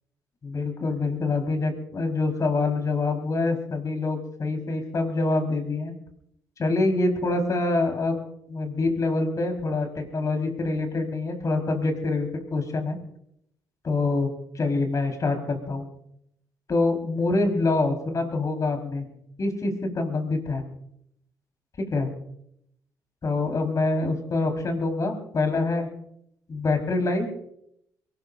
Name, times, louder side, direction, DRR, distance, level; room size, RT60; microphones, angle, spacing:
voice 1, 0.4-5.9 6.6-8.2 8.5-13.0 13.8-14.3 14.5-15.9 16.7-19.1 19.4-20.6 21.9-22.1 23.2-25.9 26.5-27.3, left 3 dB, 45° left, 4 dB, 4.3 m, -25 dB
23.5 x 19.0 x 2.6 m, 0.74 s
supercardioid pair, 60°, 8 cm